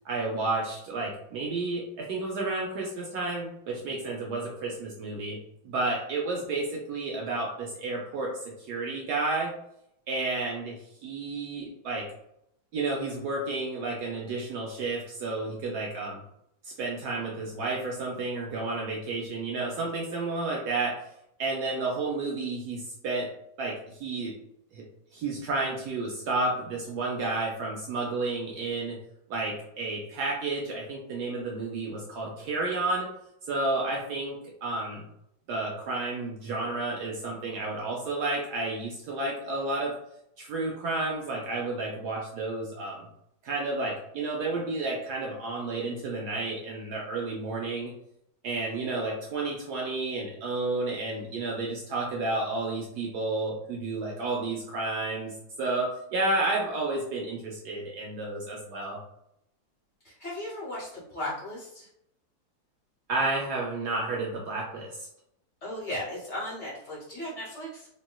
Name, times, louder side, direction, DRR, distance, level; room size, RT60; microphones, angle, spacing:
voice 1, 0.0-5.4 5.6-9.5 10.1-12.1 12.7-16.2 16.6-21.0 21.4-23.3 23.6-24.3 24.7-24.8 25.1-29.0 29.3-33.1 33.5-35.0 35.5-39.9 40.4-43.0 43.4-47.9 48.4-59.0 63.1-65.1, right 2 dB, 70° right, -2 dB, 1.0 m, -31 dB
voice 2, 60.0-61.9 65.6-67.9, left 1 dB, 45° left, -7 dB, 1.2 m, -36 dB
3.1 x 2.8 x 2.2 m, 0.78 s
omnidirectional pair, 2.0 m